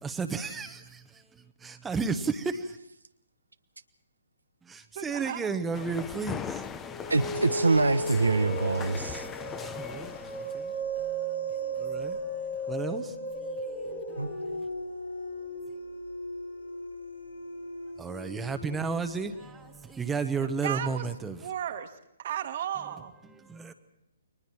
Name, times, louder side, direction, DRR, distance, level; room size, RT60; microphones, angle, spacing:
voice 1, 0.0-2.8 4.6-6.6 9.4-14.7 18.0-21.5 23.2-23.7, right 5 dB, 10° right, 1.1 m, -34 dB
voice 2, 4.9-5.4 20.6-21.1 21.4-21.9 22.2-23.1, right 10 dB, 45° right, 1.7 m, -34 dB
sound 1, 5.7-10.7, left 7 dB, 15° left, 0.9 m, -40 dB
sound 2, 6.8-19.6, right 1 dB, 90° left, 6.1 m, -36 dB
voice 3, 7.1-9.3 14.2-14.3, right 3 dB, 80° right, 0.9 m, -25 dB
30.0 x 22.5 x 4.4 m
figure-of-eight pair, 130°, 0 cm